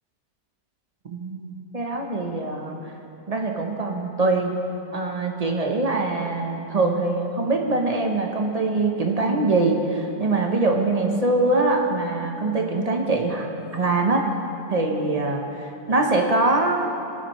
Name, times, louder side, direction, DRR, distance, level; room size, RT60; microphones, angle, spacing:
voice 1, 1.0-2.8 3.3-4.5 4.9-14.2 14.7-16.9, right 2 dB, 35° right, 2 dB, 0.6 m, -23 dB
22.0 x 7.4 x 3.1 m, 2.7 s
omnidirectional pair, 1.7 m